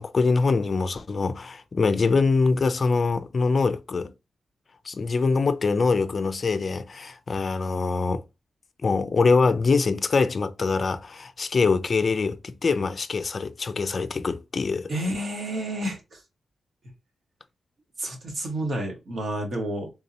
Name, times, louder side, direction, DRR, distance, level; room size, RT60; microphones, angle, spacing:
voice 1, 0.0-4.1 4.9-8.2 8.8-14.9, left 4 dB, 45° left, 0.4 m, -24 dB
voice 2, 14.9-16.2 18.0-19.9, right 1 dB, 60° right, 1.3 m, -30 dB
3.6 x 2.8 x 2.7 m
cardioid pair, 90°, 0 cm